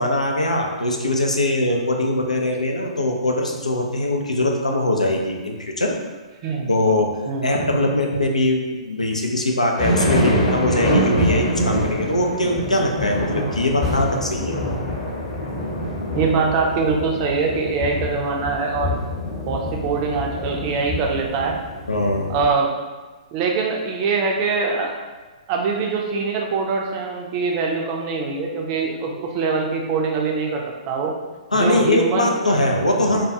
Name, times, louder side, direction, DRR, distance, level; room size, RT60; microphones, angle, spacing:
voice 1, 0.0-6.0 6.7-7.2 7.4-14.6 21.9-22.3 31.5-33.3, left 1 dB, 85° left, 1 dB, 0.4 m, -21 dB
sound 1, 9.8-22.5, equal, 40° left, 0.9 m, -25 dB
voice 2, 16.1-19.0 19.5-21.5 22.3-22.7 23.3-24.9 25.5-31.1 31.5-32.4 33.1-33.2, right 4 dB, 35° right, 0 dB, 0.4 m, -23 dB
2.3 x 2.2 x 2.7 m, 1.3 s
figure-of-eight pair, 120°, 4 cm